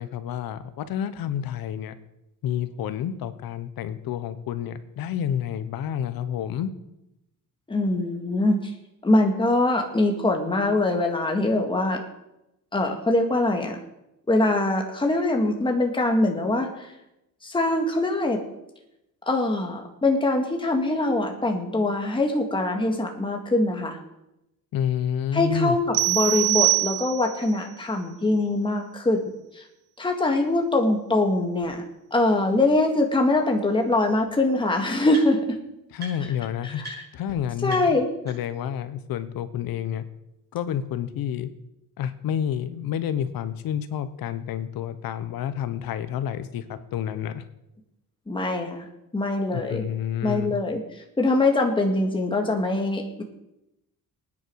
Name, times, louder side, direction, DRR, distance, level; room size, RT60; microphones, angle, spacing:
voice 1, 0.0-1.9 2.4-6.7 24.7-25.8 35.9-36.8 37.1-38.0 38.2-40.0 40.5-41.5 42.0-47.4 49.5-50.5, left 9 dB, 70° left, 12 dB, 1.2 m, -29 dB
voice 2, 7.7-8.6 9.0-12.0 12.7-13.8 14.3-16.7 17.4-18.4 19.3-24.0 25.3-29.2 30.0-31.8 32.1-35.4 36.6-37.0 37.6-38.1 48.3-48.8 49.1-49.8 50.2-50.8 51.2-53.2, left 2 dB, 15° left, 2 dB, 1.9 m, -23 dB
sound 1, 25.9-27.5, right 21 dB, 85° right, 0.8 m, -23 dB
sound 2, 31.6-31.7 32.3-32.4 33.7-33.8 34.1-35.6 36.0-36.4 36.8-37.0 37.3-37.4 37.7-38.7, right 4 dB, 25° right, 6.9 m, -43 dB
21.0 x 9.8 x 4.7 m, 0.89 s
cardioid pair, 150°, 36 cm